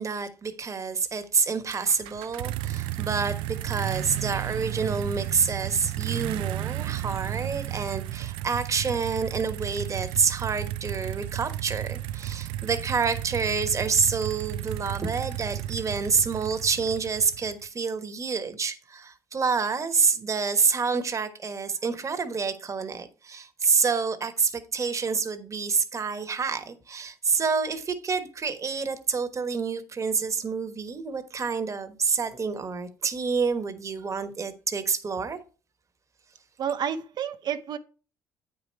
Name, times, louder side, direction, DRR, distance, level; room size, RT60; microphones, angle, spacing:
voice 1, 0.0-35.4, right 5 dB, 35° right, 1.3 m, -28 dB
sound 1, 1.7-17.7, right 14 dB, 80° right, 0.3 m, -33 dB
voice 2, 36.6-37.8, right 8 dB, 55° right, 0.7 m, -30 dB
8.8 x 4.9 x 4.4 m
supercardioid pair, 70°, 9 cm